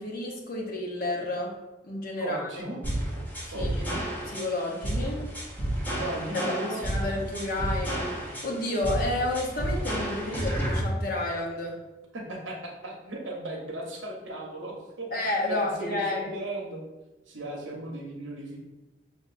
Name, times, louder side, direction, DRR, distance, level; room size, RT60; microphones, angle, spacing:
voice 1, 0.0-1.6 1.8-2.5 3.4-5.3 6.3-11.8 15.1-16.3, left 2 dB, 50° left, -1 dB, 0.8 m, -31 dB
voice 2, 2.2-2.8 3.5-4.0 5.9-6.8 12.1-15.1 15.5-16.8 17.3-18.6, right 1 dB, 90° right, -1 dB, 1.0 m, -36 dB
sound 1, 2.8-10.8, right 1 dB, 10° left, 0.7 m, -31 dB
6.5 x 2.5 x 2.5 m, 1.1 s
head